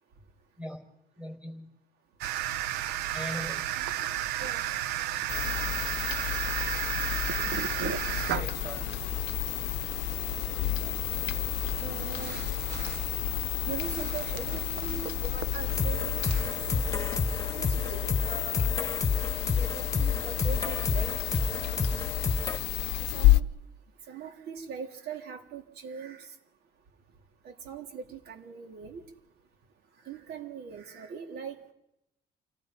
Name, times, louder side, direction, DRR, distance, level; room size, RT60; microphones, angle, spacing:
voice 1, 1.2-1.7 3.1-3.7 8.3-9.0, equal, 5° right, 4.9 m, -40 dB
sound 1, 2.2-17.1, right 12 dB, 85° right, 0.9 m, -35 dB
sound 2, 5.3-23.4, left 16 dB, 90° left, 0.7 m, -31 dB
voice 2, 11.8-12.5 13.7-18.7 19.6-21.8 23.1-23.5 24.1-26.3 27.5-29.0 30.1-31.6, right 6 dB, 70° right, 3.5 m, -41 dB
sound 3, 15.7-22.6, left 4 dB, 20° left, 1.5 m, -30 dB
29.0 x 18.5 x 5.4 m
cardioid pair, 110°, 17 cm